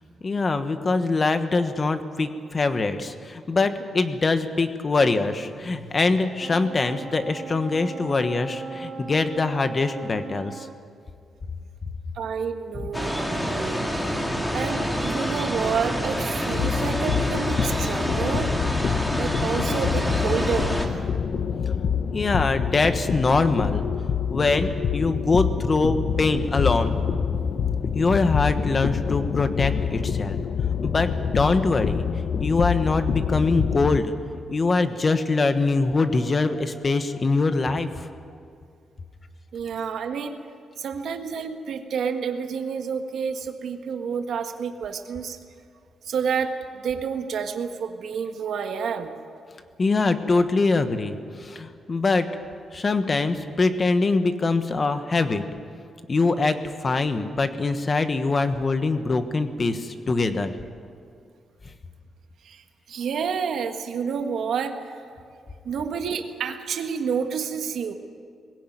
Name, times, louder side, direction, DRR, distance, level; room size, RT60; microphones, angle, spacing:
voice 1, 0.2-10.7 12.8-12.9 21.7-21.8 22.1-23.9 24.3-26.9 27.9-30.4 30.8-32.0 32.4-34.1 34.5-38.1 49.8-52.3 52.7-55.5 56.1-60.6, left 3 dB, 30° left, 9 dB, 1.2 m, -23 dB
sound 1, 6.4-10.8, right 4 dB, 45° right, 1.7 m, -38 dB
voice 2, 12.1-13.8 14.5-18.5 19.2-20.7 39.5-40.4 40.8-45.4 46.0-49.1 62.4-65.0 65.6-67.9, right 6 dB, 70° right, 6 dB, 1.5 m, -29 dB
sound 2, 12.9-20.9, equal, 5° left, 2.1 m, -27 dB
sound 3, 16.5-34.0, left 7 dB, 55° left, 0.9 m, -26 dB
21.5 x 17.0 x 9.3 m, 2.2 s
wide cardioid pair, 155°, 0 cm